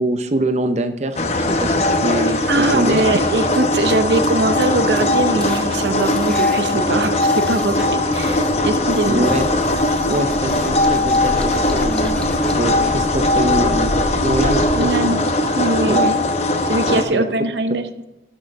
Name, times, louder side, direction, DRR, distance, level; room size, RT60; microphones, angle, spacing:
voice 1, 0.0-2.5 2.7-3.0 9.0-9.5 10.1-12.2 12.5-13.9 14.2-15.2 15.9-16.1 16.9-17.2, right 1 dB, 40° right, 8 dB, 0.7 m, -23 dB
sound 1, 1.2-17.0, left 2 dB, 40° left, 0.8 m, -19 dB
voice 2, 2.5-9.3 14.7-15.2 15.5-16.2 16.7-18.0, right 2 dB, 80° right, 10 dB, 0.7 m, -21 dB
sound 2, 3.5-4.7 5.0-5.1 5.4-8.5 8.9-12.8, left 1 dB, 5° left, 0.6 m, -38 dB
sound 3, 7.6-14.8, left 1 dB, 55° left, 1.8 m, -30 dB
12.0 x 6.5 x 3.4 m, 0.98 s
head